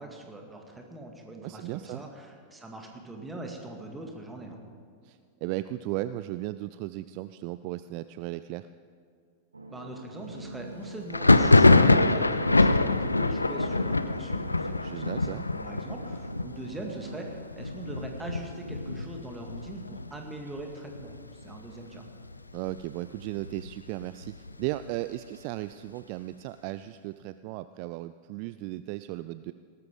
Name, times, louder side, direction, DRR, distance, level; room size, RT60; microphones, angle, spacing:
voice 1, 0.0-4.6 9.7-22.1, right 2 dB, 10° right, 2 dB, 2.1 m, -42 dB
voice 2, 1.4-2.0 5.0-8.7 14.8-15.5 22.5-24.3 24.6-29.5, right 16 dB, 45° right, 13 dB, 0.3 m, -36 dB
sound 1, 9.5-17.4, right 1 dB, 80° right, 0.9 m, -46 dB
Thunder, 11.1-20.6 20.9-21.6 21.8-22.8 23.2-24.9, left 2 dB, 80° left, 0.4 m, -24 dB
18.0 x 13.5 x 3.7 m, 2.2 s
figure-of-eight pair, 90°, 0 cm